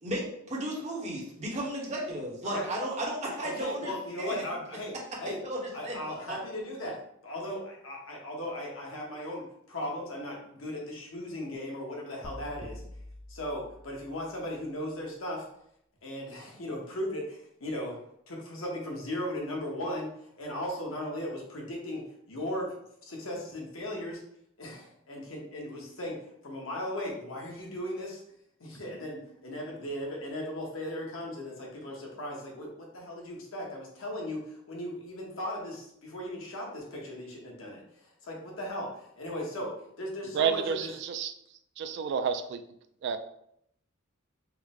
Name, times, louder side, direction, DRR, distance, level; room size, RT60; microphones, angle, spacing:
voice 1, 0.0-3.9 4.2-4.4 5.4-6.4, right 1 dB, 35° right, -3 dB, 1.0 m, -34 dB
voice 2, 3.4-5.4 5.7-7.0 7.2-12.8 13.3-15.4 16.0-18.0 18.3-20.1 20.4-22.0 22.3-22.7 23.0-24.2 24.6-26.2 26.4-28.2 28.6-37.8 38.2-40.9, left 1 dB, 85° left, -1 dB, 1.1 m, -37 dB
sound 1, 12.2-14.5, left 1 dB, 15° left, 0.4 m, -46 dB
voice 3, 40.3-41.3 41.8-42.6 43.0-43.2, right 6 dB, 60° right, 9 dB, 0.3 m, -29 dB
4.8 x 2.1 x 3.5 m, 0.73 s
head